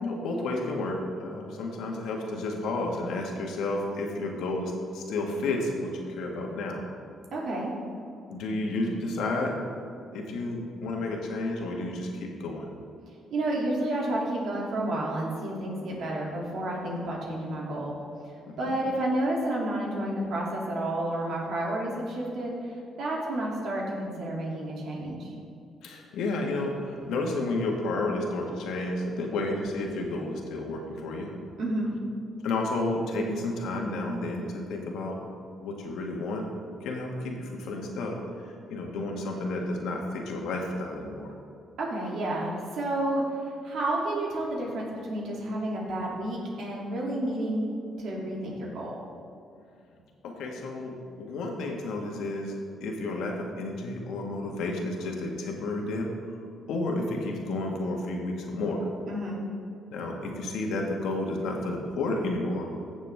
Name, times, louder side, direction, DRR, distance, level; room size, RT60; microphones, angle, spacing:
voice 1, 0.0-6.8 8.3-9.6 10.1-12.7 18.5-18.7 25.8-31.3 32.4-35.2 35.6-36.4 36.8-38.2 38.7-41.3 50.2-52.5 52.8-56.1 56.7-58.9 59.9-62.7, left 2 dB, 85° left, 0 dB, 1.7 m, -31 dB
voice 2, 7.3-7.7 13.3-18.0 18.6-25.3 31.6-31.9 41.8-47.7 48.0-49.0 59.1-59.4, right 1 dB, 70° right, -3 dB, 2.7 m, -30 dB
15.5 x 7.3 x 3.5 m, 2.6 s
cardioid pair, 100°, 0 cm